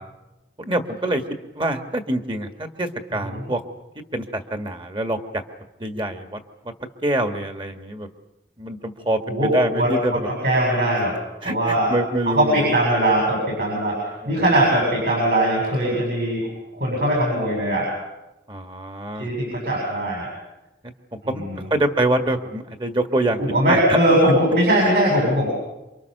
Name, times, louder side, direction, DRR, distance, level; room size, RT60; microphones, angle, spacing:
voice 1, 0.6-1.2 1.5-3.6 4.1-5.4 5.8-6.4 7.0-8.1 8.6-10.3 11.4-12.5 14.2-14.4 18.5-19.3 21.3-21.4 21.7-23.4 23.7-24.0 24.8-24.9, right 1 dB, 25° right, 6 dB, 1.7 m, -25 dB
voice 2, 9.3-9.9 10.4-11.1 11.4-11.9 12.3-14.0 14.3-17.9 19.2-20.3 21.2-21.6 23.4-25.5, right 1 dB, 70° right, -2 dB, 7.6 m, -20 dB
28.0 x 24.5 x 6.7 m, 0.99 s
head